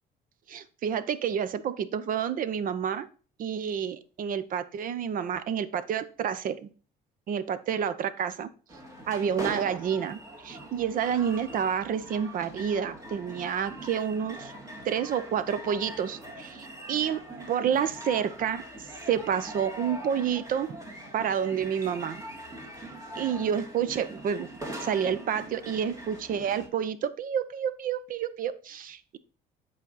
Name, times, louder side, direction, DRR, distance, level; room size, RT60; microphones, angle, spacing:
voice 1, 0.5-3.1 3.4-6.7 7.3-8.5 9.1-14.5 14.8-17.2 17.5-18.6 19.1-20.7 21.1-22.2 23.2-24.5 24.8-29.2, right 8 dB, 55° right, 14 dB, 0.8 m, -29 dB
sound 1, 8.7-26.7, right 1 dB, 20° right, 2.2 m, -42 dB
8.2 x 5.0 x 4.0 m, 0.39 s
cardioid pair, 110°, 17 cm